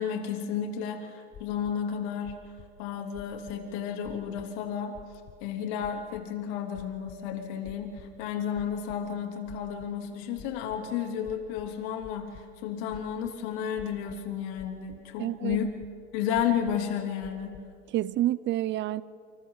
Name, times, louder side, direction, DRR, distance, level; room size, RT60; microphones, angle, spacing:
voice 1, 0.0-2.4 2.8-5.0 5.4-15.7 16.1-17.6, left 8 dB, 60° left, 3.2 m, -32 dB
sound 1, 1.3-1.7 2.2-2.7 3.1-3.7 4.0-4.5 4.9-5.4 5.8-6.2 6.7-7.2 7.6-8.2 8.5-9.0 9.5-10.0 10.3-10.8 11.2-12.4 12.9-13.3 13.8-14.3 14.6-15.0 15.5-15.9 16.3-16.9 17.2-17.6, left 10 dB, 30° left, 1.3 m, -49 dB
voice 2, 15.2-15.6 17.9-19.0, right 14 dB, 30° right, 0.6 m, -28 dB
28.5 x 26.5 x 4.0 m
hypercardioid pair, 110°, 37 cm